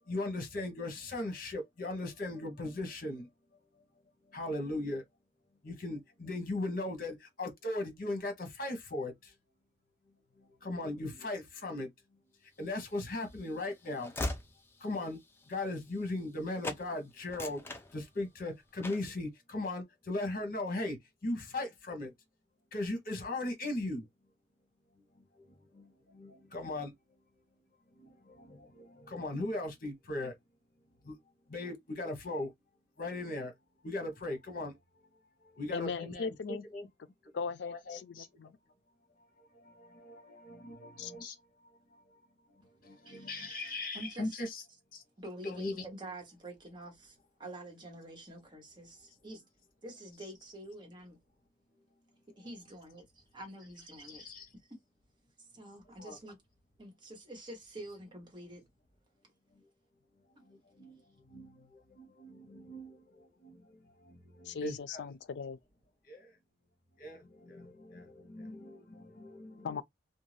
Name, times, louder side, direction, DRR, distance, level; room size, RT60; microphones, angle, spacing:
voice 1, 0.1-3.3 4.3-5.0 5.6-9.3 10.4-11.9 12.6-14.1 14.8-15.2 15.5-17.6 17.9-22.1 22.7-24.1 25.7-26.9 28.0-30.3 31.0-31.1 31.5-32.5 33.0-33.5 33.8-34.8 35.4-36.9 37.6-38.3 39.5-41.3 41.9-42.0 42.8-44.6 44.9-45.0 45.4-45.8 54.1-54.5 56.0-56.2 60.5-65.0 66.1-66.3 67.0-69.8, left 2 dB, 55° left, 1.0 m, -38 dB
Train / Slam, 12.7-16.4 16.6-16.9 17.2-18.4 18.8-19.2, left 2 dB, 15° left, 0.4 m, -41 dB
voice 2, 35.7-36.7 37.3-38.6 41.0-41.1 64.4-65.6 69.6-69.8, left 5 dB, 85° left, 0.4 m, -38 dB
voice 3, 43.0-44.4 45.2-49.4 49.8-51.2 52.4-54.4 54.7-54.8 55.4-56.4 56.8-58.6, right 1 dB, 25° right, 1.2 m, -47 dB
2.6 x 2.2 x 3.2 m
head